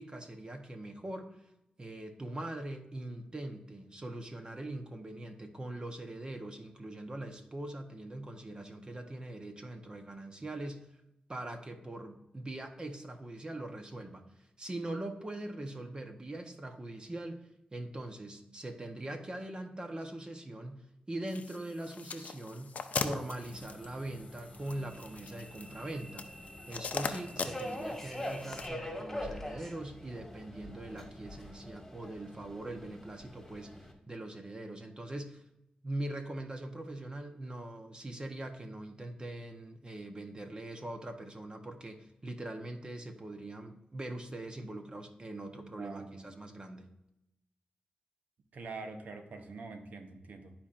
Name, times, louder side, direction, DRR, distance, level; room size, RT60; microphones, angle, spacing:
voice 1, 0.0-1.5 1.8-10.9 11.3-26.3 26.7-35.4 35.8-46.9, right 1 dB, 35° right, 5 dB, 1.0 m, -42 dB
sound 1, 21.3-28.7, left 5 dB, 65° left, 0.6 m, -41 dB
Subway metro underground, 23.4-33.9, left 1 dB, 10° left, 1.9 m, -44 dB
voice 2, 45.8-46.3 48.5-50.5, right 3 dB, 75° right, 6 dB, 0.9 m, -45 dB
12.0 x 4.3 x 2.5 m, 0.86 s
cardioid pair, 55°, 3 cm